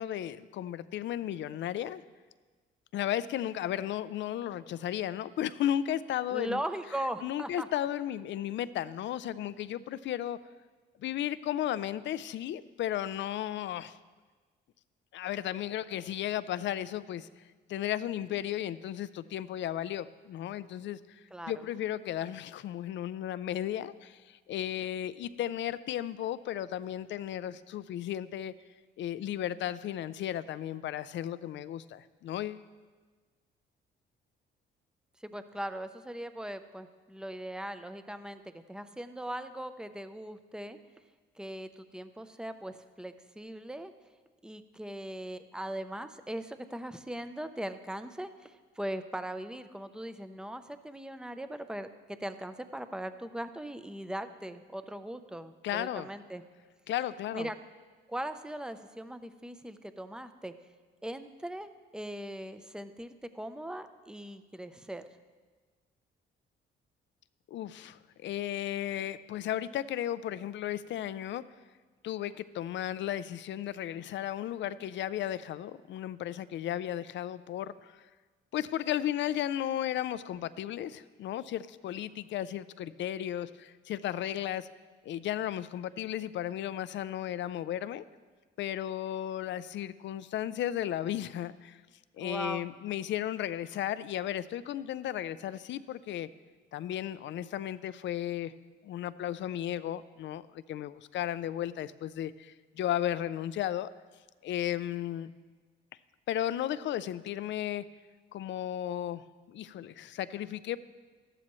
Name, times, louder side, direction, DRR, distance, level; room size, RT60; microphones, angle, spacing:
voice 1, 0.0-2.0 2.9-6.6 7.2-10.4 11.0-14.0 15.1-17.4 17.7-28.5 29.0-32.7 55.6-56.1 56.9-57.5 67.5-71.4 72.0-78.0 78.5-84.7 85.0-88.0 88.6-91.8 92.2-96.3 96.7-98.5 98.8-103.9 104.4-105.3 106.3-107.8 108.3-110.8, left 11 dB, 70° left, 16 dB, 0.5 m, -34 dB
voice 2, 6.3-7.7 21.3-21.5 35.2-40.8 41.4-43.9 44.4-56.4 57.3-57.6 58.1-60.5 61.0-65.1 92.2-92.6, right 1 dB, 5° right, 10 dB, 0.6 m, -39 dB
13.5 x 11.5 x 3.1 m, 1.4 s
cardioid pair, 90°, 20 cm